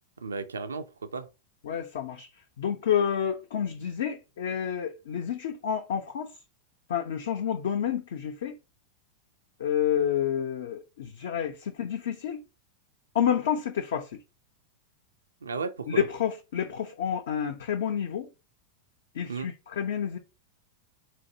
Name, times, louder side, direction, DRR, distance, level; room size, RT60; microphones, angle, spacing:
voice 1, 0.2-1.3 15.4-16.1 19.3-19.5, right 4 dB, 70° right, 0.4 m, -34 dB
voice 2, 1.6-2.3 2.6-6.3 6.9-8.5 9.6-12.4 13.1-14.2 15.9-18.3 19.1-20.2, left 8 dB, 60° left, 0.5 m, -29 dB
4.4 x 2.6 x 2.7 m
figure-of-eight pair, 90°, 0 cm